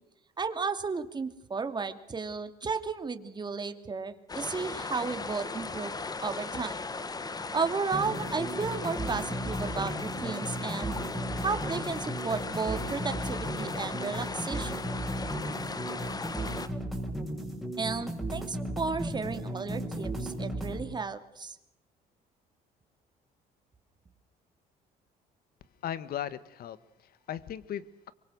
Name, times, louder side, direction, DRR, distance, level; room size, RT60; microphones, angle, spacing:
voice 1, 0.4-5.9 6.2-6.8 7.5-11.0 11.4-14.7 17.8-21.6, right 4 dB, 25° right, 8 dB, 2.6 m, -33 dB
sound 1, 4.3-16.7, left 3 dB, 20° left, 1.5 m, -37 dB
sound 2, 7.9-20.8, right 1 dB, ahead, 6.8 m, -35 dB
voice 2, 25.8-28.1, left 10 dB, 65° left, 15 dB, 1.7 m, -38 dB
25.0 x 23.5 x 6.4 m, 0.80 s
cardioid pair, 110°, 17 cm